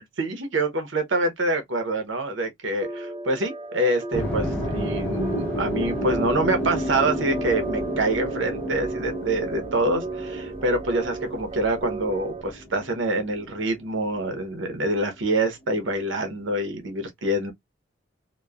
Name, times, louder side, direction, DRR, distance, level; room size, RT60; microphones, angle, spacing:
voice 1, 0.0-17.5, right 2 dB, 80° right, 0.8 m, -26 dB
sound 1, 2.8-12.4, right 3 dB, 25° right, 0.4 m, -35 dB
sound 2, 4.1-14.3, equal, 5° left, 0.8 m, -31 dB
3.0 x 2.1 x 2.3 m
head